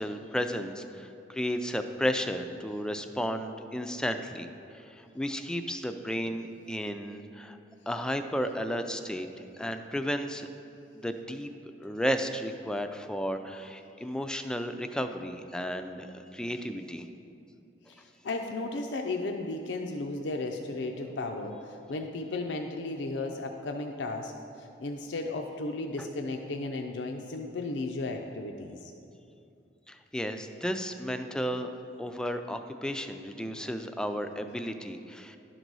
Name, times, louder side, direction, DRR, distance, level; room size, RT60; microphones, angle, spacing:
voice 1, 0.0-4.5 4.8-7.6 7.9-9.3 9.6-10.5 10.9-11.5 11.8-17.1 26.0-26.1 29.9-31.7 32.0-35.4, equal, 5° left, 7 dB, 0.3 m, -33 dB
voice 2, 17.9-24.3 24.6-28.9, left 2 dB, 90° left, 3 dB, 0.5 m, -35 dB
11.0 x 3.9 x 6.1 m, 2.6 s
head